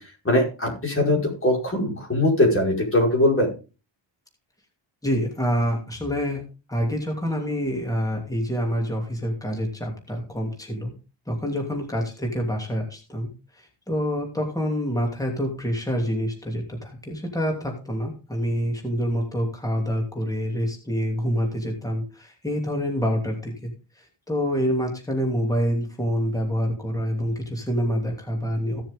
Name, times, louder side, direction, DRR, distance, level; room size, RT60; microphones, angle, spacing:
voice 1, 0.3-3.5, left 1 dB, 25° left, -1 dB, 5.3 m, -21 dB
voice 2, 5.0-6.4 6.7-10.9 11.3-23.7 24.3-28.8, equal, 5° left, 1 dB, 2.9 m, -27 dB
16.5 x 7.4 x 3.8 m, 0.32 s
wide cardioid pair, 125°, 47 cm